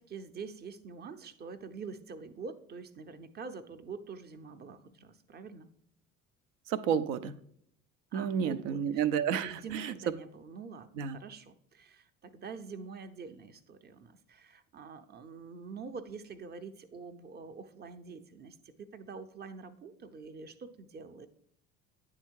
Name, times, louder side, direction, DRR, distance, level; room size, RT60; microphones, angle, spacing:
voice 1, 0.0-5.7 8.1-8.9 9.4-21.3, right 5 dB, 25° right, 10 dB, 0.7 m, -45 dB
voice 2, 6.7-7.3 8.1-9.9 11.0-11.2, right 8 dB, 70° right, 13 dB, 0.6 m, -31 dB
9.2 x 3.7 x 4.6 m, 0.69 s
hypercardioid pair, 60°, 40 cm